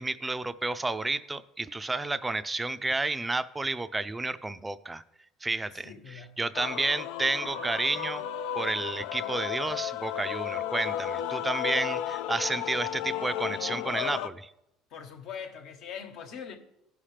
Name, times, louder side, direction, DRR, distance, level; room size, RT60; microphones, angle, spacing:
voice 1, 0.0-5.0 5.4-5.9 6.4-8.2 8.6-14.5, right 2 dB, 15° right, 0.4 m, -31 dB
voice 2, 5.8-6.4 14.9-16.6, left 7 dB, 65° left, 1.3 m, -42 dB
Male singing / Female singing / Musical instrument, 6.5-14.3, left 10 dB, 85° left, 0.4 m, -33 dB
16.5 x 5.7 x 3.3 m
cardioid pair, 115°, 0 cm